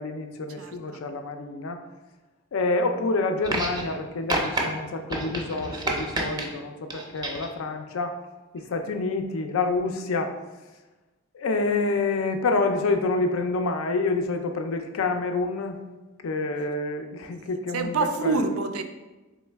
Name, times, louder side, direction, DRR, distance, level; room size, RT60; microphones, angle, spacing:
voice 1, 0.0-1.8 2.5-8.2 8.5-10.4 11.3-15.8 16.2-18.0 18.2-18.5, left 3 dB, 75° left, 6 dB, 0.4 m, -27 dB
voice 2, 0.6-1.0 17.7-18.8, right 3 dB, 90° right, 8 dB, 0.4 m, -27 dB
sound 1, 3.4-4.0 4.3-4.6 5.1-6.5 6.9-7.5 8.6-8.7, right 2 dB, 20° right, 0.4 m, -29 dB
3.7 x 3.1 x 3.4 m, 1.2 s
head